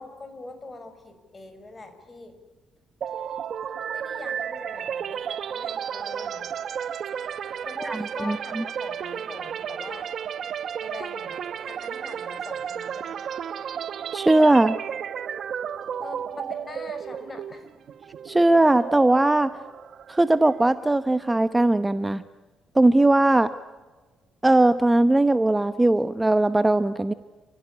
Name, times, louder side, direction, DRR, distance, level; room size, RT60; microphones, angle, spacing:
voice 1, 0.0-2.4 3.9-6.5 7.6-10.1 10.8-13.2 16.0-17.7, left 2 dB, 30° left, 8 dB, 5.7 m, -42 dB
sound 1, 3.0-20.8, right 8 dB, 60° right, 0.8 m, -33 dB
voice 2, 14.1-14.8 18.3-19.5 20.1-22.2 22.7-23.5 24.4-27.1, right 2 dB, 15° right, 12 dB, 0.9 m, -19 dB
29.5 x 16.0 x 9.8 m, 1.3 s
cardioid pair, 90°, 0 cm